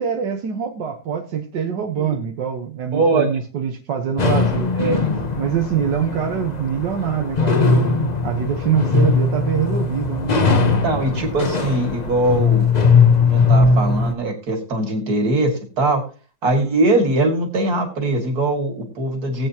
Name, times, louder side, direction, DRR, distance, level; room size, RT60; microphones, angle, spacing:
voice 1, 0.0-4.7 5.4-10.3, right 8 dB, 85° right, 2 dB, 1.9 m, -24 dB
voice 2, 2.9-3.3 4.8-5.1 10.6-12.7 13.3-15.5 15.8-16.0 16.4-19.5, right 2 dB, 60° right, 4 dB, 2.8 m, -21 dB
sound 1, 4.2-14.1, left 4 dB, 30° left, 1.0 m, -19 dB
18.5 x 8.5 x 2.9 m, 0.34 s
omnidirectional pair, 1.8 m